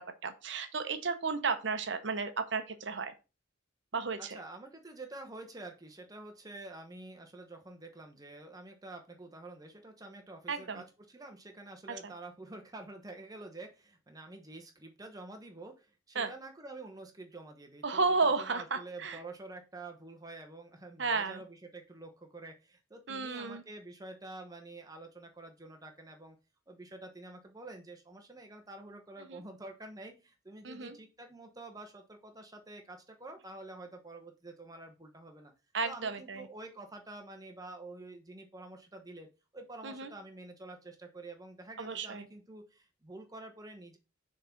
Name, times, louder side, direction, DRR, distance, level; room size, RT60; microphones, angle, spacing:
voice 1, 0.0-3.1 3.9-4.4 10.5-10.8 16.1-16.3 17.8-19.2 21.0-21.4 23.1-23.6 29.3-29.4 30.6-30.9 35.7-36.5 39.8-40.1 41.8-42.3, right 4 dB, 60° right, 9 dB, 0.8 m, -33 dB
voice 2, 4.2-26.4 26.7-35.5 35.8-39.3 39.5-44.0, right 2 dB, 20° right, 4 dB, 1.1 m, -48 dB
6.5 x 3.8 x 5.8 m, 0.30 s
head